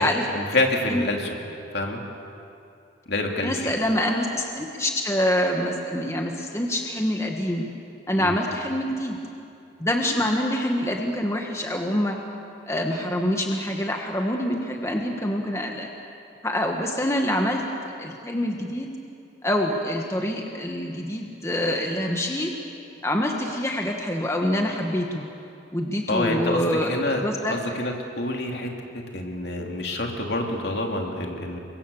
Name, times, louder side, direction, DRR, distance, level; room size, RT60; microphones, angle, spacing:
voice 1, 0.0-1.4 1.7-2.0 3.1-3.7 8.2-8.4 26.1-28.7 29.1-31.6, left 2 dB, 60° left, 1 dB, 2.9 m, -27 dB
voice 2, 3.4-7.7 8.1-9.2 9.8-12.2 12.7-15.9 16.4-17.6 18.0-18.9 19.4-22.5 23.0-25.3 25.7-27.6, left 1 dB, 15° left, 2 dB, 1.4 m, -25 dB
29.5 x 24.0 x 7.1 m, 2.6 s
head